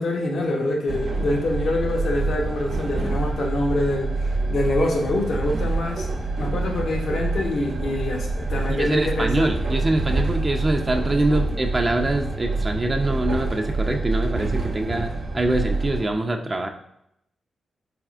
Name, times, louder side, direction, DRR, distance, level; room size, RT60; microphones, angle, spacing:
voice 1, 0.0-6.1 6.4-9.5 10.1-10.3 11.3-11.4, left 1 dB, 70° left, 0 dB, 0.7 m, -25 dB
Train, 0.9-16.1, right 3 dB, 75° right, 0.8 m, -26 dB
voice 2, 8.7-16.7, right 1 dB, 35° right, 4 dB, 0.4 m, -24 dB
4.1 x 3.4 x 2.4 m, 0.78 s
cardioid pair, 55°, 0 cm